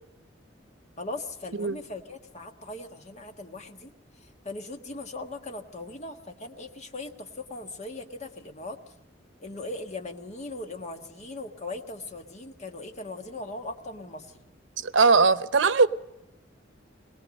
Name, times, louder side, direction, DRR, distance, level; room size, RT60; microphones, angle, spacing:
voice 1, 1.0-3.9 4.2-8.8 9.4-14.4, left 2 dB, 40° left, 5 dB, 1.6 m, -39 dB
voice 2, 14.8-15.9, right 4 dB, 85° right, 14 dB, 0.8 m, -20 dB
22.5 x 19.0 x 6.5 m, 0.89 s
head